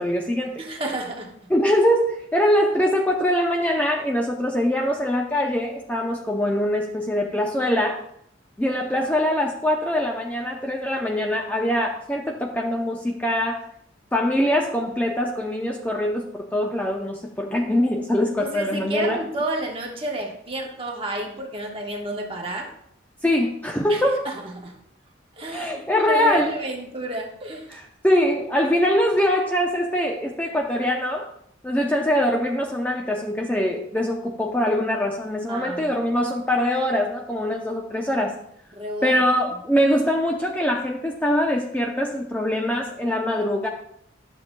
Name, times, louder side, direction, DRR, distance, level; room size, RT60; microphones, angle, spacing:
voice 1, 0.0-0.6 1.5-8.0 8.6-13.6 14.1-19.2 23.2-24.3 25.5-26.5 27.7-31.3 31.6-38.4 39.0-43.7, left 1 dB, 10° left, 0 dB, 0.6 m, -23 dB
voice 2, 0.6-1.5 18.4-22.7 23.9-24.8 25.4-27.8 35.5-36.0 38.7-39.2, right 1 dB, 30° right, 1 dB, 1.2 m, -31 dB
12.0 x 7.2 x 2.3 m, 0.69 s
head